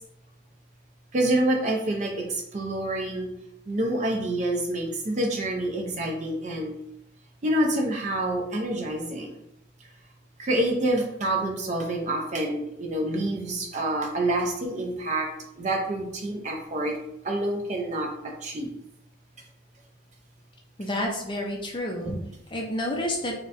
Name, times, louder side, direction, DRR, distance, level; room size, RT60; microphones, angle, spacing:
voice 1, 1.1-3.3 3.7-6.7 7.4-9.4 10.4-15.3 15.6-17.0 17.2-18.7 22.1-22.2, right 1 dB, 35° right, 1 dB, 0.4 m, -27 dB
voice 2, 20.8-22.2 22.5-23.3, left 1 dB, 25° left, 0 dB, 0.4 m, -29 dB
3.8 x 2.1 x 2.5 m, 0.80 s
head